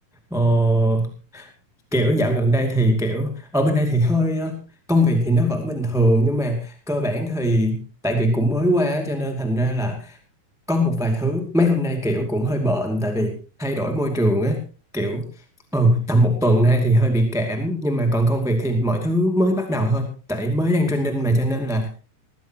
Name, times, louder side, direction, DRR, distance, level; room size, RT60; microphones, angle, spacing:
voice 1, 0.3-1.5 1.9-4.6 4.9-10.2 10.7-14.6 14.9-15.3 15.7-21.9, equal, ahead, 3 dB, 1.6 m, -21 dB
20.5 x 15.5 x 3.0 m, 0.34 s
omnidirectional pair, 4.1 m